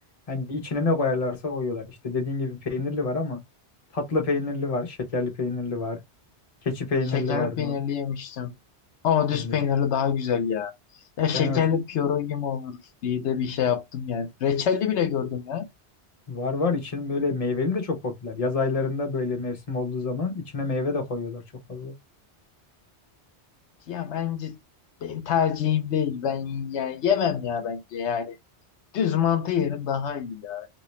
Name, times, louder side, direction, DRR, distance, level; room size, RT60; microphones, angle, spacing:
voice 1, 0.3-3.4 3.9-6.0 6.6-7.8 9.3-9.6 11.3-11.8 16.3-21.4 21.7-21.9, left 3 dB, 35° left, 1.0 m, -28 dB
voice 2, 7.1-8.5 9.0-10.7 11.2-15.7 23.9-24.6 25.0-28.4 28.9-30.7, left 8 dB, 80° left, 0.9 m, -26 dB
3.0 x 2.8 x 3.1 m
omnidirectional pair, 1.1 m